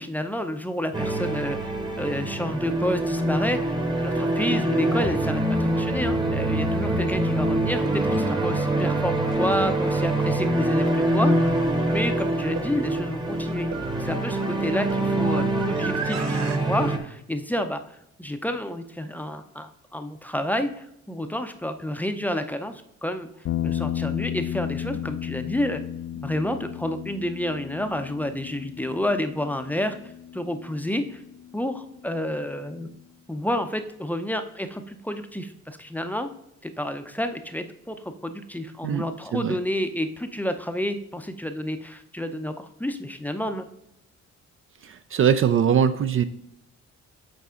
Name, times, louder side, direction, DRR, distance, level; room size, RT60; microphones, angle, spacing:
voice 1, 0.0-1.6 2.0-3.8 4.0-11.6 11.8-13.7 14.0-23.3 23.6-25.8 26.1-30.0 30.3-31.2 31.5-32.9 33.3-36.3 36.6-43.7, left 1 dB, 5° left, 7 dB, 0.5 m, -29 dB
sound 1, 0.9-17.0, right 1 dB, 15° right, 1.0 m, -25 dB
sound 2, 7.7-16.6, right 6 dB, 65° right, 0.8 m, -39 dB
sound 3, 23.4-31.8, left 11 dB, 55° left, 0.5 m, -33 dB
voice 2, 44.8-46.2, right 8 dB, 45° right, 11 dB, 0.4 m, -21 dB
8.2 x 4.1 x 3.7 m, 0.79 s
cardioid pair, 90°, 30 cm